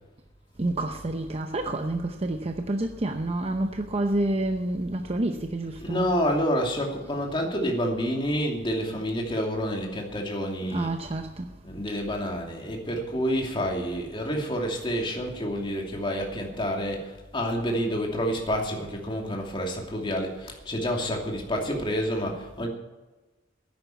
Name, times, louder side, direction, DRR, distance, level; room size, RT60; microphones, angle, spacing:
voice 1, 0.6-6.1 10.7-11.4, right 2 dB, 35° right, 0.7 m, -28 dB
voice 2, 5.8-10.9 11.6-22.7, equal, 25° left, 2.7 m, -28 dB
10.5 x 9.6 x 9.3 m
head